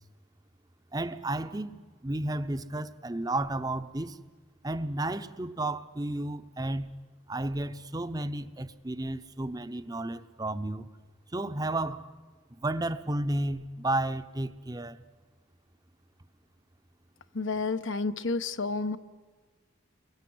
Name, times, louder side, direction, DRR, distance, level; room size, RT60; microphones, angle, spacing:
voice 1, 0.9-4.2 4.6-7.0 7.3-10.9 11.3-12.1 12.5-15.0, right 1 dB, 20° right, 0.7 m, -32 dB
voice 2, 17.3-19.0, left 3 dB, 75° left, 1.0 m, -30 dB
29.5 x 23.0 x 7.9 m
head